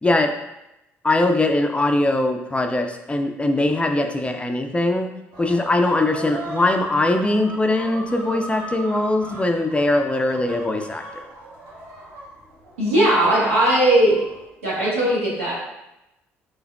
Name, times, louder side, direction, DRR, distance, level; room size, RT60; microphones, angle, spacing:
voice 1, 0.0-0.4 1.0-5.1 5.4-11.3, left 2 dB, 15° left, 5 dB, 0.4 m, -21 dB
sound 1, 5.3-14.5, right 2 dB, 60° right, 1.1 m, -38 dB
voice 2, 12.8-14.2 14.6-15.5, right 1 dB, 85° right, -7 dB, 1.2 m, -18 dB
3.8 x 3.4 x 2.3 m, 0.90 s
hypercardioid pair, 50°, 7 cm